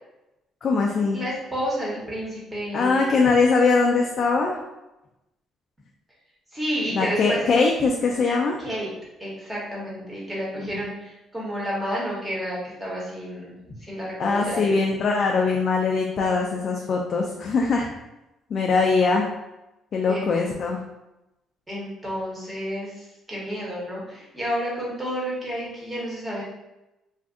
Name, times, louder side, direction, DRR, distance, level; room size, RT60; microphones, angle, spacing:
voice 1, 0.6-1.2 2.7-4.6 6.9-8.6 10.7-10.8 14.2-17.9 18.5-19.3 19.9-20.8, left 4 dB, 45° left, 0 dB, 0.3 m, -22 dB
voice 2, 1.1-3.2 6.5-7.5 8.6-8.9 9.2-14.8 20.1-20.3 21.7-26.4, equal, 10° right, -6 dB, 1.1 m, -31 dB
2.5 x 2.3 x 3.6 m, 0.96 s
cardioid pair, 125°, 0 cm